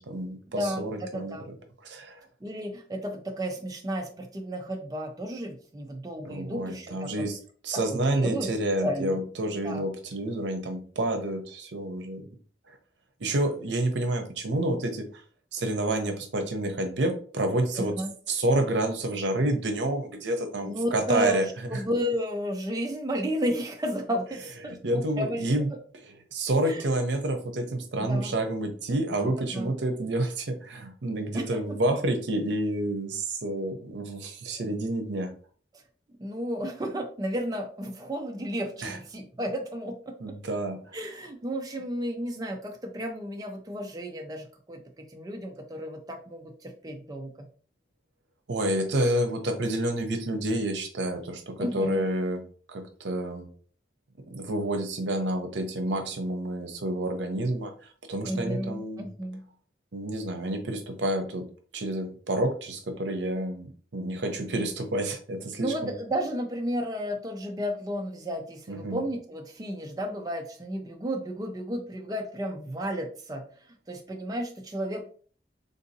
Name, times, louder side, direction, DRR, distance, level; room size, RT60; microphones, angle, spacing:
voice 1, 0.0-1.4 1.8-2.2 6.2-7.4 7.6-12.3 12.7-12.8 13.2-15.2 15.5-18.0 18.3-21.8 24.8-25.7 26.1-35.3 38.8-39.0 40.2-41.0 48.5-52.4 52.7-53.5 54.3-57.7 58.1-59.1 59.9-61.4 61.7-65.9 68.7-69.0, right 1 dB, 90° right, 6 dB, 0.6 m, -29 dB
voice 2, 0.5-1.5 2.4-7.2 7.7-8.5 8.8-9.2 9.6-9.9 17.8-18.1 20.6-21.4 21.7-25.4 26.6-26.9 28.0-28.3 29.2-29.7 31.3-31.8 36.2-40.3 40.9-47.5 51.6-52.0 58.2-59.4 65.6-73.4 73.9-75.0, equal, 20° right, 3 dB, 0.4 m, -33 dB
3.5 x 2.6 x 2.6 m, 0.43 s
head